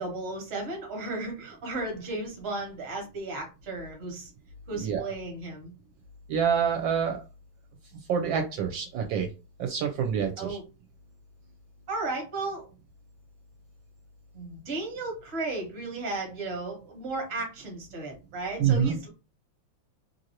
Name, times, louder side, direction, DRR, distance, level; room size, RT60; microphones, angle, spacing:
voice 1, 0.0-4.3 4.7-5.7 10.4-10.7 11.9-12.7 14.3-19.1, right 2 dB, 40° right, 2 dB, 1.1 m, -34 dB
voice 2, 6.3-7.2 8.1-9.3 9.6-10.6 18.6-19.0, right 7 dB, 75° right, 3 dB, 1.2 m, -26 dB
3.0 x 2.6 x 2.8 m, 0.31 s
omnidirectional pair, 2.2 m